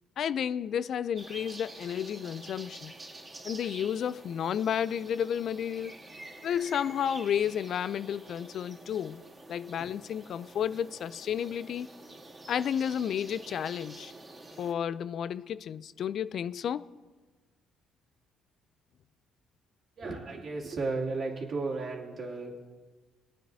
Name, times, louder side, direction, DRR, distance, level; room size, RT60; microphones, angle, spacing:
voice 1, 0.2-2.9 3.4-5.9 6.4-9.2 9.5-11.9 12.5-14.1 14.6-16.9, left 8 dB, 60° left, 0.3 m, -32 dB
sound 1, 1.2-14.7, right 2 dB, 30° right, 2.6 m, -48 dB
voice 2, 20.0-22.7, right 3 dB, 50° right, 2.7 m, -34 dB
25.0 x 9.3 x 2.7 m
cardioid pair, 105°, 0 cm